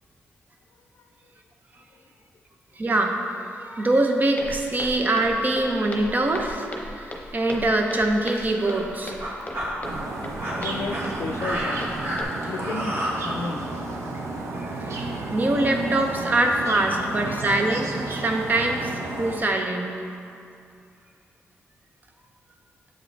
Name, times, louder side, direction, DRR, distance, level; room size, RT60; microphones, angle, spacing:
voice 1, 2.8-3.1 3.6-6.7 6.9-9.3 14.5-17.9 18.2-20.2, right 2 dB, 35° right, 3 dB, 0.7 m, -24 dB
Walk footsteps, 4.4-12.2, left 1 dB, 30° left, 0.8 m, -38 dB
sound 1, 6.9-7.1 7.9-8.0 8.4-8.8 9.2-9.7 10.2-13.1, equal, 60° right, 1.4 m, -30 dB
sound 2, 9.8-19.4, right 2 dB, 75° right, 0.6 m, -32 dB
voice 2, 10.6-12.0 12.5-13.0 13.2-14.1 17.2-17.5, left 4 dB, 75° left, 6 dB, 0.4 m, -33 dB
7.7 x 5.1 x 3.3 m, 2.5 s
cardioid pair, 85°, 5 cm